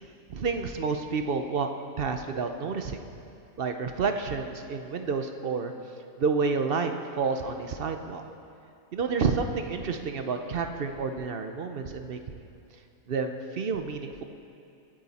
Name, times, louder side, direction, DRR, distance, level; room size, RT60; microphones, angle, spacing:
voice 1, 0.3-1.7 2.0-3.0 3.6-5.7 6.2-8.2 8.9-12.5 13.1-14.2, right 5 dB, 50° right, 6 dB, 0.8 m, -29 dB
23.0 x 8.8 x 4.2 m, 2.6 s
omnidirectional pair, 1.4 m